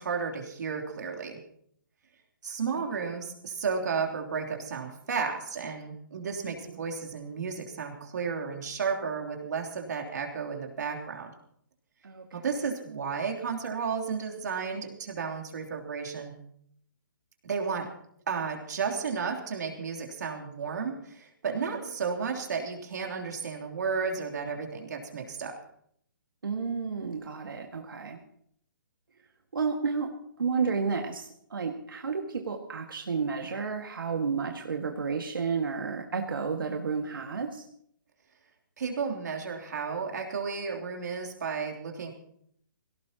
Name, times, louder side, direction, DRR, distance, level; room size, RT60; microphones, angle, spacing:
voice 1, 0.0-1.4 2.4-11.3 12.3-16.3 17.4-17.9 18.3-25.5 38.8-42.1, right 5 dB, 55° right, 1 dB, 3.3 m, -33 dB
voice 2, 26.4-28.2 29.5-30.1 30.4-37.6, right 5 dB, 90° right, 3 dB, 1.9 m, -31 dB
22.0 x 17.5 x 3.0 m, 0.67 s
hypercardioid pair, 170°, 11 cm